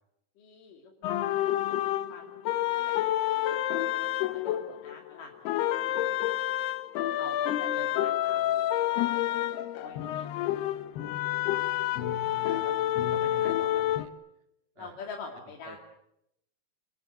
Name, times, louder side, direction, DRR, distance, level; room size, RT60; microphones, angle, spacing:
voice 1, 0.4-3.0 3.3-3.4 3.9-6.4 7.2-9.5 9.8-10.8 14.8-15.8, left 4 dB, 60° left, 0 dB, 4.1 m, -47 dB
sound 1, 1.0-5.1 5.5-14.1, left 13 dB, 85° left, 3.2 m, -29 dB
voice 2, 12.5-12.8 13.1-14.1 14.8-15.0 15.6-15.8, right 4 dB, 45° right, 5 dB, 4.1 m, -48 dB
30.0 x 20.0 x 8.0 m, 0.81 s
omnidirectional pair, 4.6 m